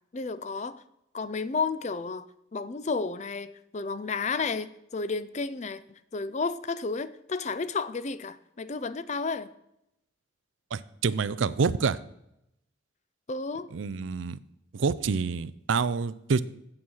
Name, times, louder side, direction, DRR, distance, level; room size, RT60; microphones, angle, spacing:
voice 1, 0.1-0.8 1.1-2.3 2.5-5.8 6.1-9.5 13.3-13.7, left 4 dB, 35° left, 15 dB, 0.4 m, -32 dB
voice 2, 10.7-12.0 13.7-14.4 14.7-16.4, right 5 dB, 80° right, 17 dB, 0.5 m, -27 dB
8.9 x 7.7 x 5.5 m, 0.81 s
head